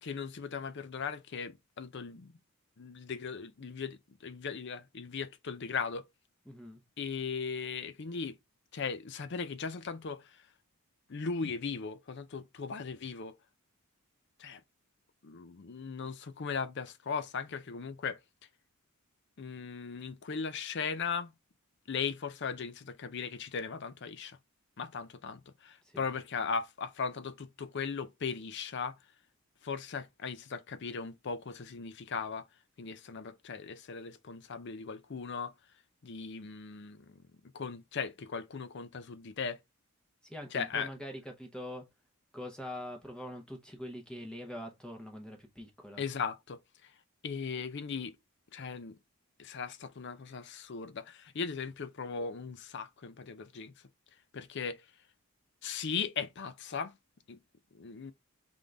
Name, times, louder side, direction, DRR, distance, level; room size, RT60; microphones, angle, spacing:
voice 1, 0.0-2.3 2.8-6.1 7.0-8.4 8.7-10.4 11.1-13.3 14.4-14.6 15.2-18.2 19.4-21.3 21.9-24.4 24.8-29.0 29.6-32.5 32.8-35.5 36.0-37.2 37.5-39.6 40.5-40.9 46.0-46.9 47.2-48.2 48.5-49.0 49.4-53.7 54.3-54.9 55.6-56.9 57.3-57.4 57.7-58.1, left 5 dB, 50° left, 0.5 m, -38 dB
voice 2, 6.5-6.8 25.8-26.1 40.2-41.9 42.3-46.0, left 1 dB, 5° left, 0.8 m, -43 dB
3.9 x 3.7 x 3.2 m
head